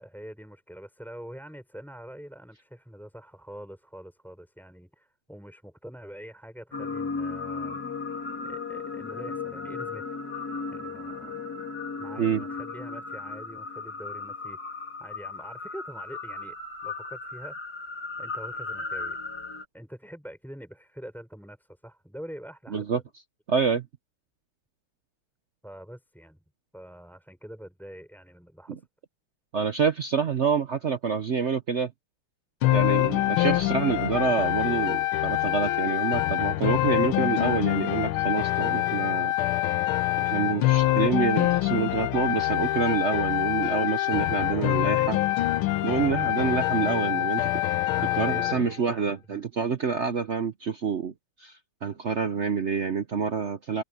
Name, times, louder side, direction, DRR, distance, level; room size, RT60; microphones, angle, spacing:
voice 1, 0.0-7.8 8.4-10.2 10.7-11.4 12.0-14.6 15.0-16.6 16.8-17.6 18.2-19.2 19.7-22.8 25.6-26.4 26.7-28.8 33.0-33.4 40.3-40.5 44.2-44.8 47.9-49.1, equal, ahead, 5.6 m, -44 dB
sound 1, 6.7-19.6, left 4 dB, 45° left, 3.9 m, -36 dB
voice 2, 23.5-23.9 28.7-28.8 29.5-31.9 32.7-39.3 40.2-45.2 45.8-47.5 48.1-51.1 51.4-53.8, right 6 dB, 65° right, 0.7 m, -27 dB
sound 2, 32.6-48.6, left 15 dB, 85° left, 1.7 m, -25 dB
omnidirectional pair, 2.3 m